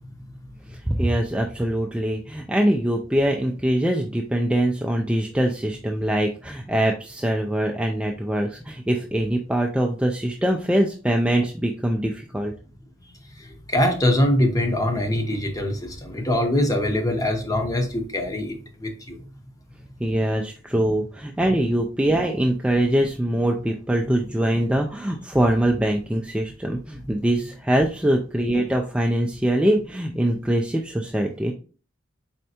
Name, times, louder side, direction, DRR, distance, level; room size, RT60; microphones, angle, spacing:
voice 1, 0.7-12.5 20.0-31.5, right 1 dB, 5° right, 2 dB, 0.3 m, -23 dB
voice 2, 13.4-19.2, left 1 dB, 20° left, 4 dB, 0.7 m, -23 dB
4.2 x 3.3 x 2.8 m, 0.37 s
head